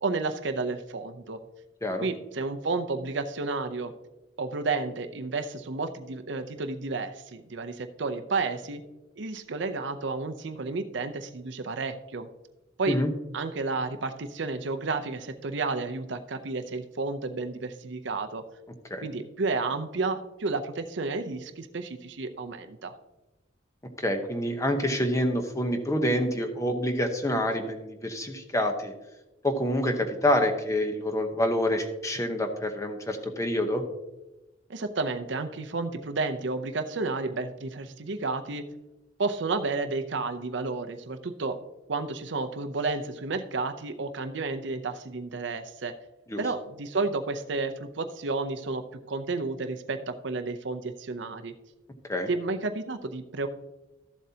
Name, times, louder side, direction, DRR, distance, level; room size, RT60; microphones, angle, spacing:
voice 1, 0.0-1.4 2.0-3.9 4.4-8.8 9.2-12.3 12.8-13.0 13.3-18.4 19.0-22.9 34.7-38.7 39.2-41.6 41.9-45.9 46.4-51.5 52.3-53.5, right 3 dB, 60° right, 7 dB, 0.6 m, -31 dB
voice 2, 24.0-28.9 29.4-33.8 46.3-46.4 52.1-52.3, left 1 dB, 15° left, 5 dB, 0.9 m, -27 dB
13.5 x 7.5 x 2.8 m, 1.0 s
head